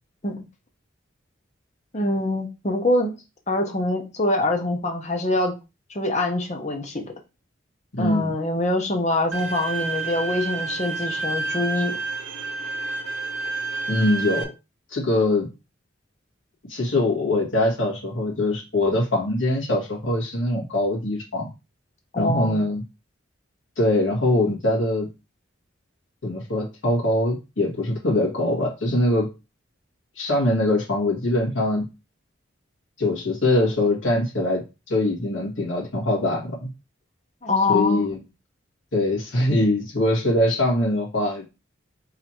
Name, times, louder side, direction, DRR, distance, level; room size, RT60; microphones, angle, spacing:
voice 1, 1.9-3.1 3.5-5.5 5.9-7.0 8.0-11.9 22.1-22.7 37.4-38.1, left 2 dB, 35° left, 3 dB, 1.0 m, -24 dB
voice 2, 7.9-8.3 13.9-14.5 14.9-15.5 16.7-21.5 22.2-22.8 23.8-25.1 26.2-29.3 30.2-31.9 33.0-36.7 37.7-38.2 38.9-41.4, left 1 dB, 85° left, -2 dB, 2.0 m, -23 dB
Bowed string instrument, 9.3-14.4, right 4 dB, 75° right, 0.8 m, -29 dB
4.0 x 2.9 x 4.4 m, 0.27 s
head